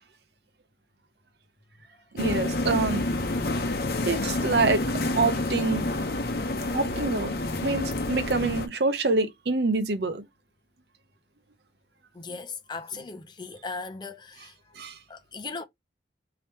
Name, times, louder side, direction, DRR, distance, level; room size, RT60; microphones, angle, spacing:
voice 1, 2.1-3.1 4.1-4.8 5.1-5.8 6.7-7.3 7.6-10.3 14.8-15.0, right 3 dB, 70° right, 0.7 m, -26 dB
sound 1, 2.2-8.7, left 2 dB, 55° left, 0.8 m, -28 dB
voice 2, 12.1-14.8 15.1-15.6, left 4 dB, 25° left, 0.5 m, -38 dB
3.5 x 2.9 x 4.3 m
head